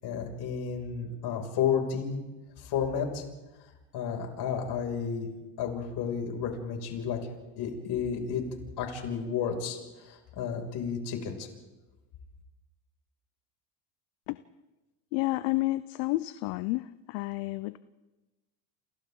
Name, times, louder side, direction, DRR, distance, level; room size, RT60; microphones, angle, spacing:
voice 1, 0.0-2.2 2.6-3.2 3.9-5.3 5.6-7.2 7.6-8.4 8.8-11.5, left 7 dB, 55° left, 2 dB, 6.2 m, -32 dB
voice 2, 15.1-17.8, left 20 dB, 75° left, 14 dB, 0.8 m, -30 dB
29.5 x 28.5 x 3.9 m, 1.1 s
supercardioid pair, 100°, 46 cm